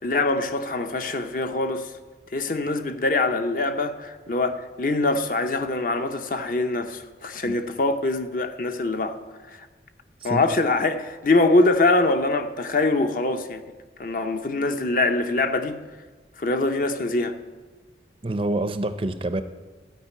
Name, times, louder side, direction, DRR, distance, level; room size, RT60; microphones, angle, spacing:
voice 1, 0.0-1.9 2.3-9.2 9.5-9.7 10.2-13.6 14.0-15.8 16.4-17.3, left 2 dB, 50° left, 0.7 m, -23 dB
voice 2, 18.2-19.4, right 2 dB, 30° right, 0.5 m, -27 dB
13.0 x 5.1 x 8.4 m
head